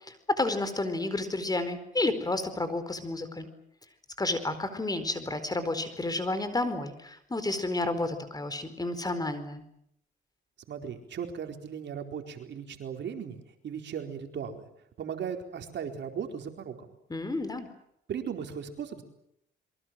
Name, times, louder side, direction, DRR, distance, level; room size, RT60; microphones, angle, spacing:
voice 1, 0.1-3.5 4.2-9.6 17.1-17.7, left 2 dB, 20° left, 11 dB, 4.5 m, -31 dB
voice 2, 10.7-13.4 13.6-14.6 15.0-16.9 18.1-19.0, right 7 dB, 65° right, 5 dB, 4.4 m, -37 dB
27.5 x 23.5 x 7.7 m, 0.73 s
cardioid pair, 90°, 20 cm